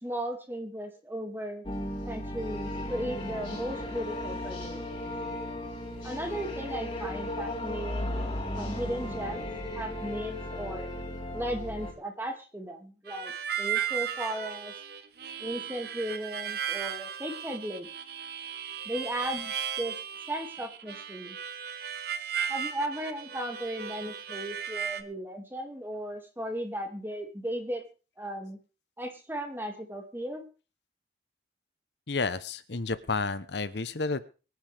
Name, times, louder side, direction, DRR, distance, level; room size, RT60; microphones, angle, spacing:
voice 1, 0.0-1.6 2.1-5.0 6.0-9.5 9.7-10.9 11.3-14.7 15.4-17.9 18.8-20.0 20.3-21.4 22.5-27.8 28.2-28.6 29.0-30.4, right 1 dB, 10° right, 4 dB, 2.3 m, -36 dB
sound 1, 1.6-11.9, left 1 dB, 25° left, 4.1 m, -35 dB
Harmonica, 13.1-25.0, right 8 dB, 55° right, 1.2 m, -36 dB
voice 2, 32.1-34.3, left 3 dB, 65° left, 14 dB, 0.9 m, -31 dB
24.0 x 9.6 x 3.5 m, 0.34 s
head